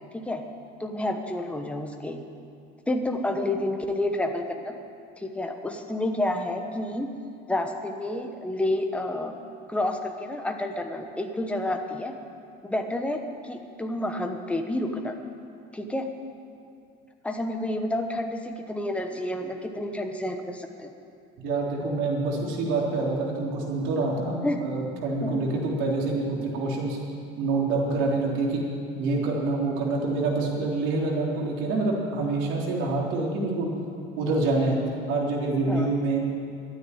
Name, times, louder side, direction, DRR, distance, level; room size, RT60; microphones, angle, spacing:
voice 1, 0.8-2.2 2.9-4.7 5.2-7.1 7.5-9.4 9.7-12.1 12.6-15.2 15.7-16.1 17.2-20.9 24.4-24.6 25.2-25.5 35.7-35.9, left 1 dB, 5° left, 4 dB, 1.1 m, -29 dB
voice 2, 21.4-27.0 27.4-28.7 29.0-33.7 34.2-34.8 35.1-36.2, right 3 dB, 70° right, -2 dB, 3.6 m, -26 dB
12.5 x 9.7 x 10.0 m, 2.5 s
cardioid pair, 150°, 21 cm